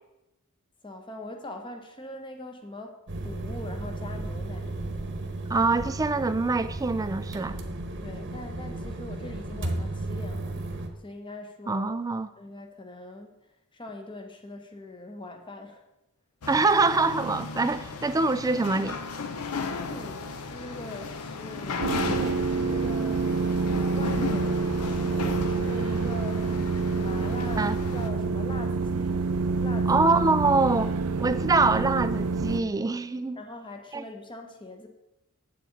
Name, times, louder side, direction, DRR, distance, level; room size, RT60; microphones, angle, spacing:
voice 1, 0.8-3.0 3.2-4.8 8.0-10.6 11.0-11.9 12.4-13.4 13.7-15.8 19.5-23.3 23.9-26.6 26.9-29.3 29.6-30.1 33.4-34.9, left 1 dB, 20° left, 4 dB, 1.0 m, -42 dB
sound 1, 3.1-10.9, right 2 dB, 55° right, 1.0 m, -34 dB
voice 2, 5.5-7.6 11.7-12.3 16.5-19.0 27.6-27.8 29.9-30.9 31.2-33.4 33.9-34.0, right 3 dB, 15° right, 12 dB, 0.3 m, -24 dB
sound 2, 16.4-28.1, left 4 dB, 85° left, 0.7 m, -36 dB
sound 3, 21.8-32.6, right 4 dB, 80° right, 0.6 m, -27 dB
7.8 x 7.5 x 3.9 m, 0.90 s
head